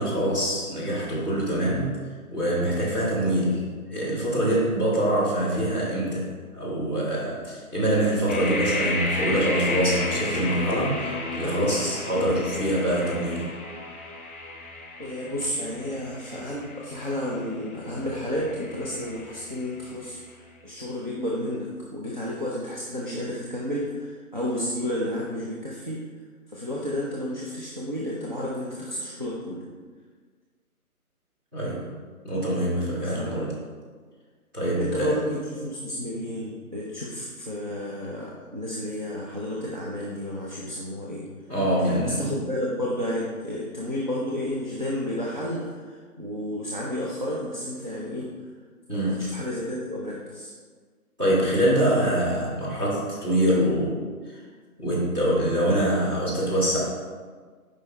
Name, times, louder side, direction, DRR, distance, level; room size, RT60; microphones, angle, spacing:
voice 1, 0.0-1.9 2.3-13.5 31.5-31.9 32.2-33.5 34.5-35.1 41.5-42.3 48.9-49.3 51.2-54.0 54.2-54.4 54.8-56.8, right 1 dB, 15° right, -11 dB, 1.6 m, -24 dB
sound 1, 8.3-20.1, left 2 dB, 50° left, 1.3 m, -33 dB
voice 2, 15.0-26.0 26.5-29.6 33.0-33.4 34.7-41.3 41.9-48.3 48.9-50.5, left 1 dB, 30° right, -5 dB, 0.6 m, -31 dB
8.2 x 5.4 x 3.2 m, 1.5 s
hypercardioid pair, 170°, 45 cm